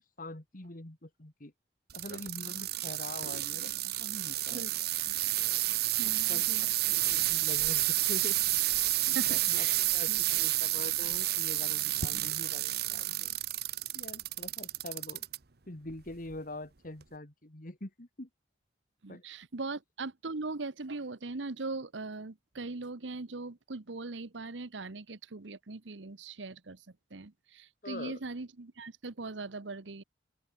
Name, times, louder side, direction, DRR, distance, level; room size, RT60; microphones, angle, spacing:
voice 1, 0.0-1.5 1.9-3.7 4.0-4.7 6.3-8.4 9.0-13.3 13.9-15.3 15.7-18.3 19.1-19.2 27.8-28.2, left 2 dB, 50° left, 2.1 m, -44 dB
Bike chain, 1.9-15.4 15.9-16.3 17.0-17.1, right 16 dB, 60° right, 1.0 m, -30 dB
voice 2, 6.0-6.7 9.1-9.8 10.1-10.2 19.0-26.8 27.1-30.0, right 3 dB, 80° right, 1.1 m, -40 dB
open air
head